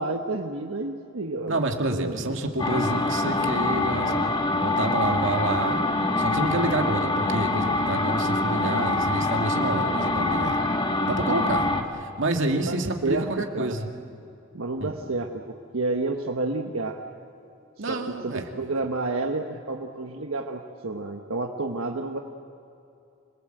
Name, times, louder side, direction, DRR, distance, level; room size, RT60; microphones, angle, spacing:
voice 1, 0.0-1.6 1.9-2.4 12.5-12.8 13.0-13.7 14.5-17.0 17.9-22.2, right 3 dB, 90° right, 3 dB, 1.3 m, -30 dB
voice 2, 1.5-5.8 6.2-10.6 11.1-13.9 14.8-14.9 17.8-18.5, right 2 dB, 65° right, 3 dB, 2.2 m, -28 dB
sound 1, 2.6-11.8, left 2 dB, 25° left, 1.7 m, -25 dB
27.0 x 20.5 x 7.9 m, 2.7 s
head